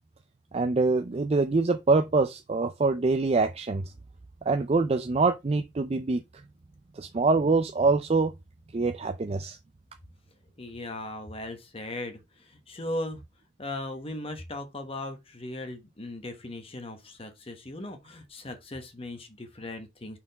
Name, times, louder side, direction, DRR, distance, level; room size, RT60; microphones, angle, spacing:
voice 1, 0.5-3.8 4.5-6.2 7.0-8.3 8.7-9.6, right 3 dB, 35° right, 0.4 m, -24 dB
voice 2, 10.6-13.2 13.6-20.2, left 1 dB, 30° left, 1.1 m, -38 dB
5.9 x 4.4 x 4.0 m
head